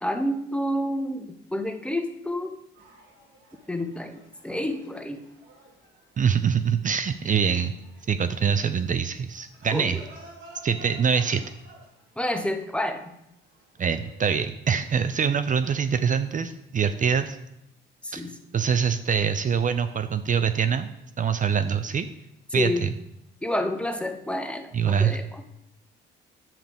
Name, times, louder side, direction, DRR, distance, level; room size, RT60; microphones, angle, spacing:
voice 1, 0.0-2.5 3.7-5.2 9.7-9.9 12.2-13.1 18.0-18.3 22.5-22.8 23.4-25.2, left 1 dB, 5° left, 6 dB, 0.9 m, -29 dB
sound 1, 2.7-15.2, right 1 dB, 70° right, 3.5 m, -52 dB
voice 2, 6.2-7.7 8.1-10.0 10.6-11.4 13.8-17.4 18.1-18.3 18.5-20.9 21.2-22.1 22.5-22.9 24.7-25.2, right 7 dB, 40° right, 11 dB, 0.5 m, -24 dB
9.7 x 7.4 x 3.5 m, 0.82 s
cardioid pair, 90°, 20 cm